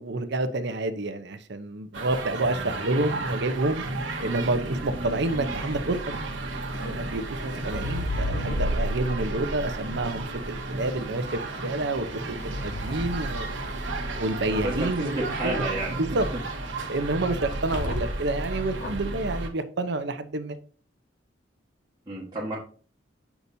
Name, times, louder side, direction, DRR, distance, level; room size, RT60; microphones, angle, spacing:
voice 1, 0.0-3.8 4.2-6.0 6.8-13.5 14.2-15.6 15.9-16.3 16.9-20.6, right 2 dB, 65° right, 0.8 m, -29 dB
sound 1, 1.9-19.5, right 2 dB, 85° right, 1.2 m, -33 dB
sound 2, 6.7-10.8 11.8-14.1 17.4-18.3 18.7-19.2, left 1 dB, 70° left, 1.3 m, -33 dB
voice 2, 14.6-16.4 22.1-22.6, right 1 dB, 20° right, 1.6 m, -31 dB
8.2 x 5.9 x 2.7 m
head